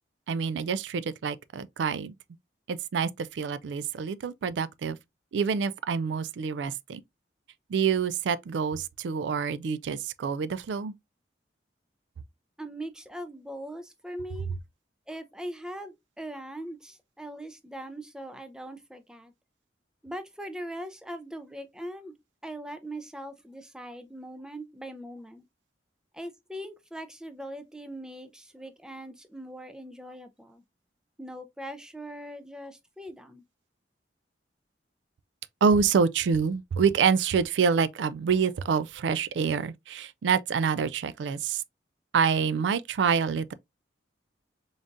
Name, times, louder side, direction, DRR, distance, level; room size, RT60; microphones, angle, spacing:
voice 1, 0.3-2.1 2.7-5.0 5.3-7.0 7.7-10.9 35.6-41.6 42.1-43.5, right 6 dB, 75° right, 0.3 m, -27 dB
voice 2, 12.6-14.5 15.1-19.3 20.0-22.1 22.4-25.4 26.1-30.6 31.2-33.4, right 1 dB, 5° right, 0.5 m, -41 dB
3.8 x 3.5 x 2.5 m
head